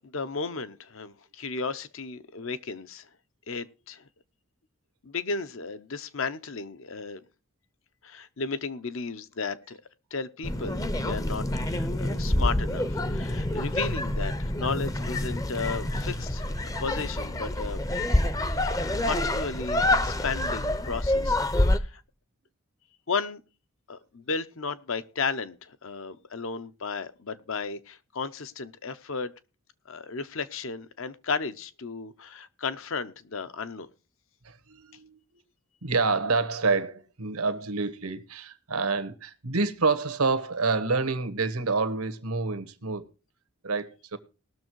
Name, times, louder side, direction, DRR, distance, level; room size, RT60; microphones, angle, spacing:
voice 1, 0.0-3.1 3.5-4.0 5.0-7.2 8.0-9.8 10.1-16.5 16.8-17.8 19.0-22.0 23.1-23.4 23.9-29.3 29.9-33.9, left 4 dB, 65° left, 0.8 m, -34 dB
sound 1, 10.4-21.8, left 1 dB, 15° left, 0.6 m, -27 dB
voice 2, 34.4-35.2 35.8-43.0 43.6-44.2, right 4 dB, 85° right, 1.2 m, -28 dB
18.5 x 6.6 x 4.6 m
head